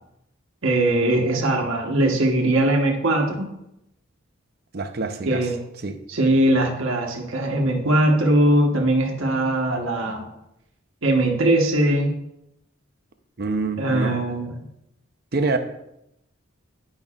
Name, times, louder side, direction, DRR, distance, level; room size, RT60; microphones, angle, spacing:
voice 1, 0.6-3.5 5.3-5.6 6.1-10.2 11.0-12.1 13.8-14.6, right 1 dB, 75° right, 1 dB, 1.2 m, -20 dB
voice 2, 4.7-5.5 5.8-6.0 13.4-14.2 15.3-15.6, right 3 dB, 50° right, 7 dB, 0.6 m, -26 dB
10.5 x 5.3 x 2.4 m, 0.82 s
head